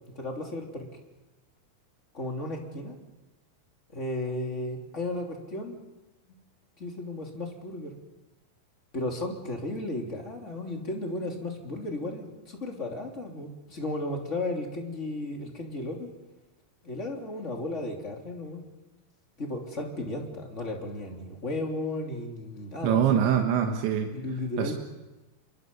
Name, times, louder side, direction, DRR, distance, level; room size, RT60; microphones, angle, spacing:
voice 1, 0.1-0.9 2.1-3.0 3.9-5.8 6.8-7.9 8.9-16.1 16.8-18.6 19.4-23.3 24.1-24.7, left 2 dB, 20° left, 1 dB, 2.7 m, -34 dB
voice 2, 22.8-24.1 24.6-24.8, right 9 dB, 85° right, 4 dB, 3.8 m, -24 dB
28.0 x 24.0 x 5.5 m, 1.1 s
omnidirectional pair, 5.2 m